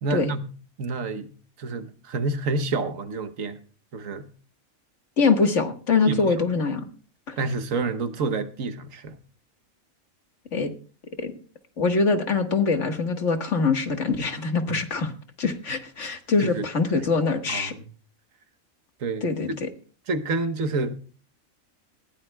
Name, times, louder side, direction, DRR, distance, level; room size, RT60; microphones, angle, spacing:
voice 1, 0.0-0.4 0.8-3.6 3.9-4.3 6.1-6.2 7.4-9.2 14.7-14.8 16.4-16.7 16.9-17.1 17.5-17.9 19.0-19.6 20.1-20.9, right 3 dB, 70° right, 1.4 m, -28 dB
voice 2, 5.2-6.9 7.3-7.4 10.5-10.7 11.2-11.3 11.8-15.1 15.4-17.7 19.2-19.7, left 4 dB, 60° left, 1.9 m, -23 dB
20.0 x 16.5 x 2.3 m
omnidirectional pair, 1.5 m